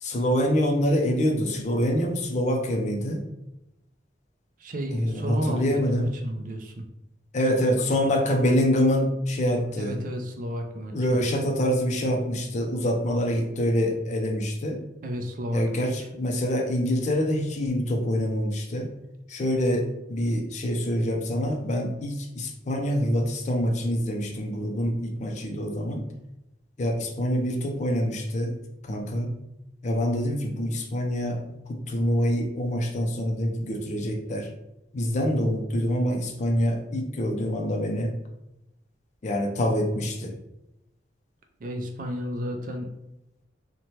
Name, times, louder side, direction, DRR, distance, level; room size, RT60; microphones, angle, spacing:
voice 1, 0.0-3.2 4.9-6.1 7.3-10.0 10.9-14.8 15.5-18.9 19.3-26.0 26.8-28.5 28.8-29.3 29.8-34.5 34.9-38.1 39.2-40.3, equal, 40° left, 3 dB, 0.4 m, -25 dB
voice 2, 4.6-6.9 7.6-7.7 9.8-11.2 15.0-16.1 41.6-42.9, equal, 45° right, 4 dB, 0.3 m, -33 dB
2.7 x 2.1 x 3.0 m, 0.90 s
head